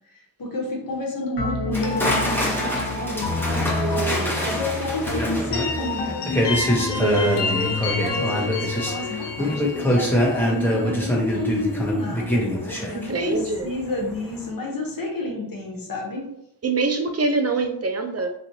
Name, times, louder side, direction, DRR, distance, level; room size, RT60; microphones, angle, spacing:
voice 1, 0.4-3.7 4.4-6.5 7.2-16.3, left 2 dB, 55° left, -1 dB, 1.1 m, -30 dB
sound 1, 1.4-11.1, left 3 dB, 80° left, 0.8 m, -28 dB
sound 2, 1.7-13.8 14.1-14.4, equal, 5° left, 0.9 m, -25 dB
voice 2, 3.8-4.5 6.9-7.5 12.9-13.7 16.6-18.4, right 3 dB, 40° right, 6 dB, 0.4 m, -25 dB
3.0 x 2.5 x 2.7 m, 0.77 s
cardioid pair, 40°, 40 cm